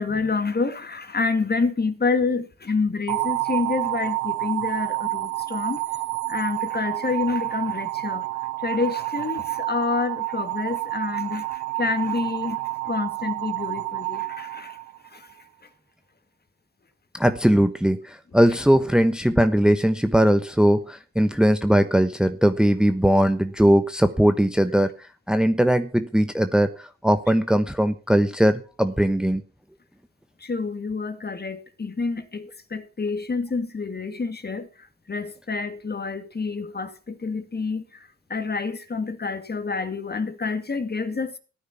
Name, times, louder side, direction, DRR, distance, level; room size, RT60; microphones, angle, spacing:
voice 1, 0.0-5.8 6.3-8.2 8.6-11.5 11.8-12.6 12.9-14.7 30.4-34.7 35.1-37.8 38.3-41.3, left 4 dB, 30° left, 2.3 m, -28 dB
sound 1, 3.1-15.2, right 23 dB, 90° right, 0.7 m, -29 dB
voice 2, 17.1-24.9 25.3-29.4, equal, ahead, 1.2 m, -20 dB
15.0 x 9.5 x 6.0 m
supercardioid pair, 65°, 31 cm